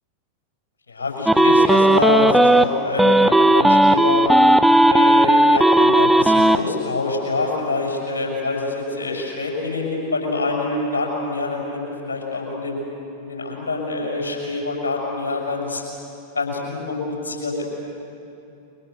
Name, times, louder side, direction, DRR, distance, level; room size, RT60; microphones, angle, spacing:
voice 1, 0.9-4.3 4.9-12.8 13.2-15.8 16.3-17.6, left 3 dB, 70° left, -1 dB, 7.2 m, -25 dB
sound 1, 1.3-2.6 3.0-6.6, right 1 dB, 5° right, 0.7 m, -14 dB
29.5 x 24.5 x 7.0 m, 2.8 s
figure-of-eight pair, 90°, 0 cm